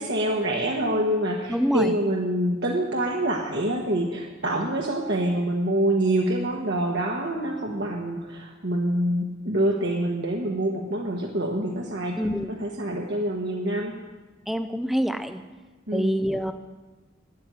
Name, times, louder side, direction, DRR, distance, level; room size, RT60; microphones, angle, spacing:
voice 1, 0.0-12.2 12.6-13.9 15.9-16.1, right 1 dB, 60° right, 0 dB, 1.4 m, -26 dB
voice 2, 1.5-2.0 12.2-12.5 14.5-15.4 15.9-16.5, equal, ahead, 8 dB, 0.6 m, -25 dB
13.0 x 9.8 x 9.1 m, 1.3 s
head